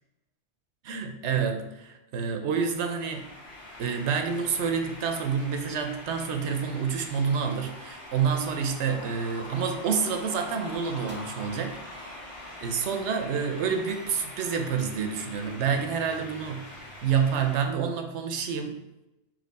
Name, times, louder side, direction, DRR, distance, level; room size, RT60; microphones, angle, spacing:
voice 1, 0.8-3.3 3.8-12.2 12.6-18.8, right 6 dB, 85° right, 6 dB, 0.9 m, -28 dB
sound 1, 2.5-17.6, left 1 dB, 65° left, 1.5 m, -44 dB
sound 2, 10.0-10.2 10.8-11.6 12.6-13.0 13.5-13.6 13.8-17.4, right 3 dB, 15° right, 0.4 m, -52 dB
4.3 x 3.1 x 4.0 m, 0.96 s
omnidirectional pair, 1.2 m